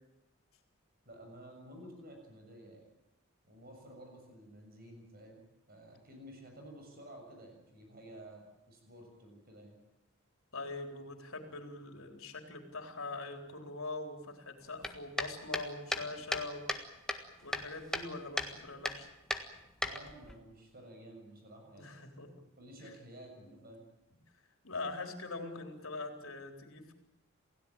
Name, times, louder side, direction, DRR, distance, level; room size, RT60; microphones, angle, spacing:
voice 1, 1.0-2.9 3.4-9.8 19.8-21.9 22.6-23.8, right 1 dB, 45° right, 3 dB, 6.8 m, -52 dB
voice 2, 10.5-16.7 17.4-19.1 21.7-22.3 22.8-22.9 23.5-23.6 24.6-26.9, left 3 dB, 70° left, 4 dB, 4.1 m, -43 dB
sound 1, 14.8-16.8 17.1-18.1 18.4-18.5 18.8-19.0 19.3-20.3, left 1 dB, 5° left, 1.6 m, -35 dB
28.0 x 16.5 x 9.0 m, 0.91 s
head